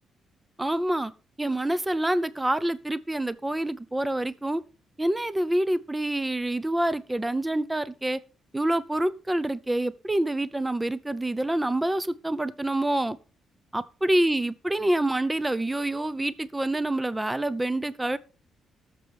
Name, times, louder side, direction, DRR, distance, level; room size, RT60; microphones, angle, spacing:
voice 1, 0.6-1.1 1.4-4.6 5.0-8.2 8.5-13.2 13.7-18.2, right 1 dB, 10° right, 17 dB, 0.5 m, -27 dB
19.5 x 6.8 x 3.4 m, 0.35 s
cardioid pair, 130°, 0 cm